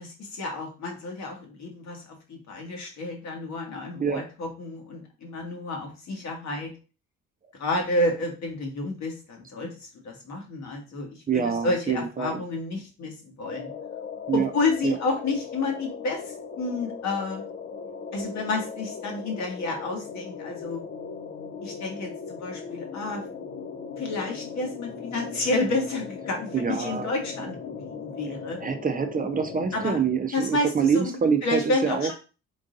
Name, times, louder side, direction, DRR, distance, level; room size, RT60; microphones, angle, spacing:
voice 1, 0.0-6.7 7.6-13.7 14.3-17.4 18.1-20.8 21.6-23.2 24.0-28.6 29.7-30.0 30.3-32.1, left 2 dB, 65° left, 1 dB, 1.5 m, -30 dB
voice 2, 11.3-12.4 14.3-14.5 14.8-15.0 26.5-27.1 28.6-32.1, right 6 dB, 30° right, 6 dB, 0.5 m, -25 dB
sound 1, 13.4-29.9, left 6 dB, 35° left, 0.5 m, -38 dB
3.8 x 2.6 x 3.8 m, 0.33 s
cardioid pair, 90°, 30 cm